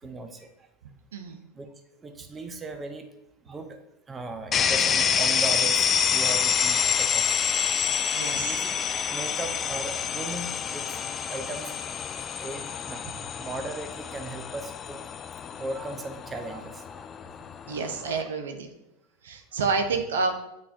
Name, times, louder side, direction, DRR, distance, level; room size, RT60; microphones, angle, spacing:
voice 1, 0.0-0.5 1.5-1.7 2.0-3.1 3.4-3.8 4.1-7.4 8.3-8.8 9.1-11.0 11.3-11.8 12.4-13.0 13.4-15.1 15.6-17.1, right 2 dB, 20° right, 6 dB, 0.7 m, -37 dB
voice 2, 1.1-1.4 8.1-8.7 17.7-18.7 19.2-20.3, right 4 dB, 80° right, 5 dB, 0.7 m, -29 dB
sound 1, 4.5-18.2, left 7 dB, 30° left, 0.3 m, -27 dB
8.7 x 4.1 x 2.8 m, 0.87 s
hypercardioid pair, 95°, 0 cm